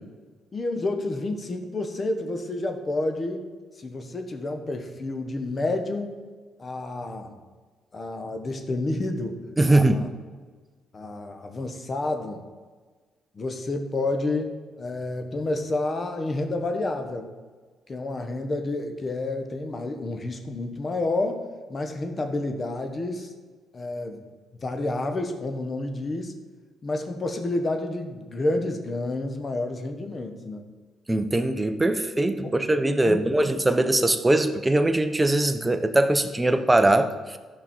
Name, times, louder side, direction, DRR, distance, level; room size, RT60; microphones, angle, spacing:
voice 1, 0.5-3.5 3.8-6.1 6.6-7.4 7.9-9.4 9.6-10.1 10.9-12.4 13.3-17.3 17.9-21.4 21.7-23.3 23.7-24.2 24.6-26.3 26.8-30.7 32.4-32.5 33.0-33.2, left 2 dB, 35° left, 6 dB, 1.2 m, -29 dB
voice 2, 9.6-10.0 31.1-37.4, right 1 dB, 15° right, 8 dB, 0.7 m, -21 dB
13.5 x 5.4 x 4.4 m, 1.4 s
cardioid pair, 90°, 0 cm